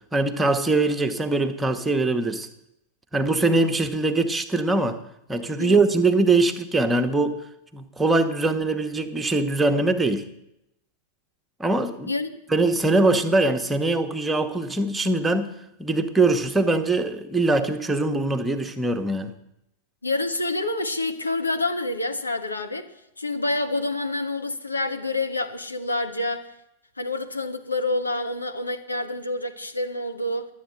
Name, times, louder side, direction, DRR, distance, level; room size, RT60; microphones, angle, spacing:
voice 1, 0.1-2.5 3.1-5.0 5.3-7.4 7.7-10.3 11.6-12.1 12.5-15.5 15.8-19.3, right 2 dB, 10° right, 1.0 m, -22 dB
voice 2, 12.1-12.4 20.0-22.9 23.2-26.5 27.0-30.5, left 2 dB, 80° left, 1.0 m, -27 dB
11.5 x 8.4 x 7.7 m
figure-of-eight pair, 90°, 0 cm